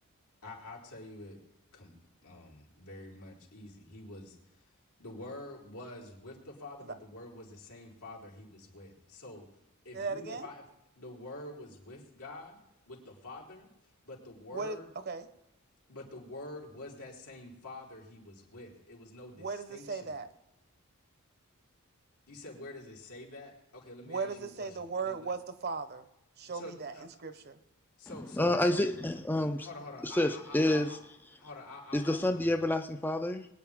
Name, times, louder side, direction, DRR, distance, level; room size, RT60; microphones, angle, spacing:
voice 1, 0.4-1.4 1.7-1.9 2.2-4.7 5.0-9.5 9.8-10.6 11.0-14.9 15.9-20.2 22.3-25.3 26.4-27.1 28.0-28.9 29.6-31.0 31.4-32.6, left 2 dB, 85° left, -3 dB, 4.0 m, -47 dB
voice 2, 9.9-10.5 14.5-14.8 15.1-15.3 19.4-20.3 24.1-26.0 26.4-26.9 27.2-27.6, right 4 dB, 45° right, 11 dB, 0.9 m, -37 dB
voice 3, 28.3-29.7 30.0-31.0 31.9-33.5, left 1 dB, 10° left, 6 dB, 0.5 m, -28 dB
22.5 x 9.6 x 3.6 m, 0.91 s
head